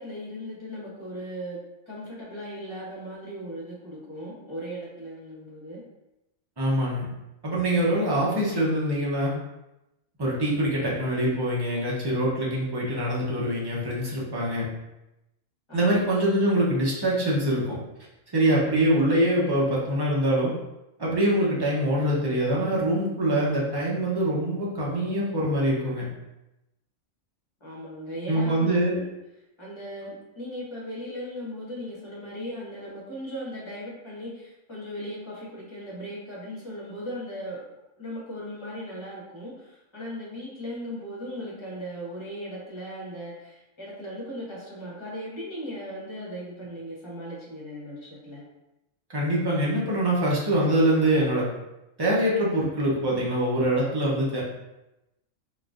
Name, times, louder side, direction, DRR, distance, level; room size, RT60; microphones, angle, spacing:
voice 1, 0.0-1.6 1.9-5.8 15.7-16.0 27.6-29.1 29.6-37.7 38.0-48.4, equal, 25° left, -6 dB, 0.9 m, -37 dB
voice 2, 6.6-7.1 7.4-9.4 10.2-14.7 15.7-17.8 18.3-20.5 21.0-26.1 28.3-29.0 49.1-51.5 52.0-54.4, right 1 dB, 25° right, -5 dB, 0.6 m, -24 dB
4.0 x 2.5 x 2.4 m, 0.93 s
omnidirectional pair, 1.3 m